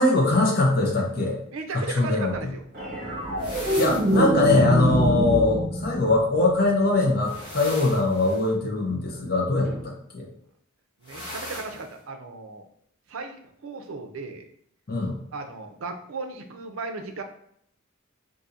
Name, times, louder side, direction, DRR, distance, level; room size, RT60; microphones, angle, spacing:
voice 1, 0.0-1.4 1.7-2.3 3.8-9.7 10.1-10.3 14.9-15.2, left 2 dB, 45° left, -2 dB, 0.8 m, -22 dB
voice 2, 1.5-2.6 11.0-12.7 13.1-14.4 15.3-17.2, right 3 dB, 70° right, 6 dB, 0.5 m, -36 dB
sound 1, 2.7-7.2 9.6-9.8, right 1 dB, 40° right, 1.3 m, -26 dB
sound 2, 3.4-4.3 7.2-8.5 11.0-11.9, left 1 dB, 20° left, 1.2 m, -38 dB
4.0 x 2.6 x 2.5 m, 0.71 s
head